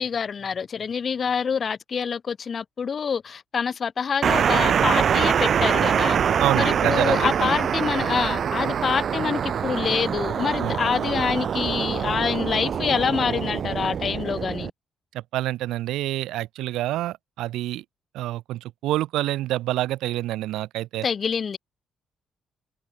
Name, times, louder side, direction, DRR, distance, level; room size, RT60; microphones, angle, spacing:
voice 1, 0.0-6.2 6.5-14.7 21.0-21.6, left 6 dB, 45° left, 0.4 m, -26 dB
sound 1, 4.2-14.7, right 8 dB, 55° right, 0.3 m, -24 dB
voice 2, 6.4-7.3 10.6-10.8 15.1-17.8 18.1-21.1, right 15 dB, 90° right, 1.2 m, -27 dB
cardioid pair, 90°, 0 cm